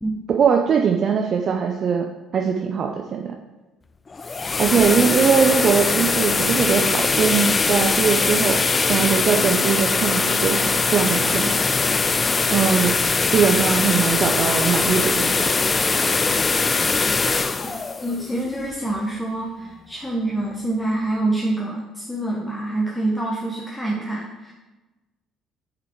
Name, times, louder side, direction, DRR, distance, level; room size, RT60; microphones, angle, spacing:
voice 1, 0.3-2.1 2.3-3.3 4.6-11.6 12.5-12.9 13.3-15.3, right 6 dB, 50° right, 2 dB, 0.5 m, -21 dB
sound 1, 4.1-19.0, left 4 dB, 30° left, 0.3 m, -21 dB
voice 2, 18.0-24.5, right 2 dB, 10° left, -3 dB, 1.0 m, -26 dB
6.3 x 4.0 x 4.5 m, 1.1 s
hypercardioid pair, 65°, 0 cm